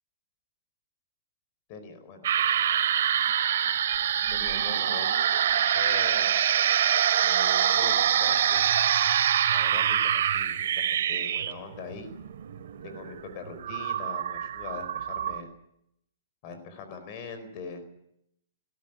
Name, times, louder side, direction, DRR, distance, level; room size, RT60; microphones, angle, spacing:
voice 1, 1.7-2.3 4.3-5.1 5.4-6.4 7.2-8.7 9.5-12.1 12.8-15.5 16.4-17.8, left 5 dB, 35° left, 8 dB, 4.6 m, -42 dB
sound 1, 2.2-15.4, right 10 dB, 65° right, 2.3 m, -25 dB
19.5 x 18.0 x 9.1 m, 0.76 s
hypercardioid pair, 150°, 0 cm